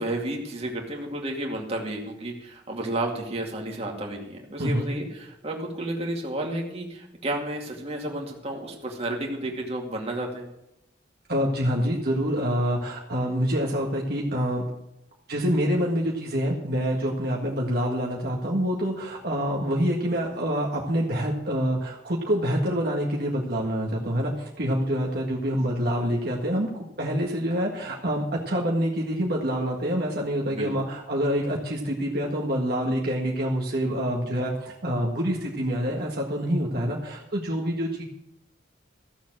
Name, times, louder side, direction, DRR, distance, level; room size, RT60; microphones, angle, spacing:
voice 1, 0.0-10.5 30.4-30.9, right 1 dB, 35° right, 0 dB, 2.4 m, -32 dB
voice 2, 4.6-5.0 11.3-14.6 15.3-38.0, equal, 55° right, -1 dB, 1.8 m, -26 dB
14.5 x 7.2 x 7.6 m, 0.84 s
head